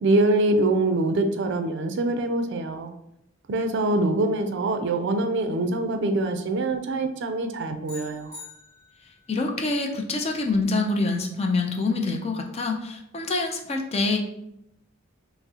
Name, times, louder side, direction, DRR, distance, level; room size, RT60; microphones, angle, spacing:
voice 1, 0.0-2.9 3.5-8.4, right 2 dB, 55° right, 7 dB, 0.4 m, -24 dB
sound 1, 7.9-9.3, left 4 dB, 55° left, 1.3 m, -44 dB
voice 2, 9.3-14.2, left 3 dB, 30° left, 3 dB, 0.4 m, -26 dB
5.9 x 2.0 x 2.7 m, 0.81 s
head